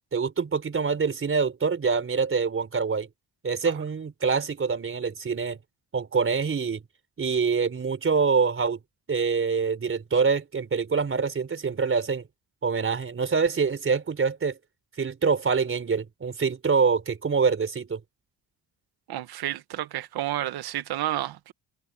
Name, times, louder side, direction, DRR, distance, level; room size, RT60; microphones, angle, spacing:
voice 1, 0.1-3.1 3.4-5.6 5.9-6.8 7.2-8.8 9.1-12.3 12.6-14.6 15.0-18.0, right 5 dB, 35° right, 4.2 m, -25 dB
voice 2, 19.1-21.5, right 13 dB, 80° right, 1.4 m, -30 dB
cardioid pair, 120°, 37 cm